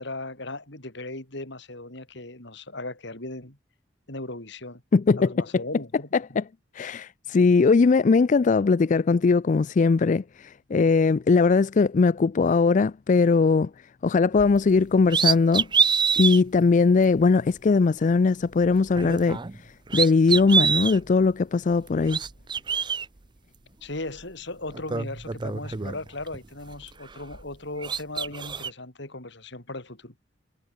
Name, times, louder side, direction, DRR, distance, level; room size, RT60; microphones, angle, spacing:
voice 1, 0.0-3.6 4.1-4.8 5.2-6.1 23.8-30.1, left 2 dB, 65° left, 4.8 m, -37 dB
voice 2, 4.9-5.6 6.4-6.5 6.7-13.7 14.0-15.7 16.1-22.2, left 4 dB, 40° left, 0.4 m, -20 dB
sound 1, 14.4-14.6 15.1-16.4 17.0-17.1 18.9-19.6 19.9-21.0 21.9-23.0 24.2-24.3 24.7-26.4 26.7-27.5 27.8-28.7, right 6 dB, 25° right, 0.6 m, -26 dB
head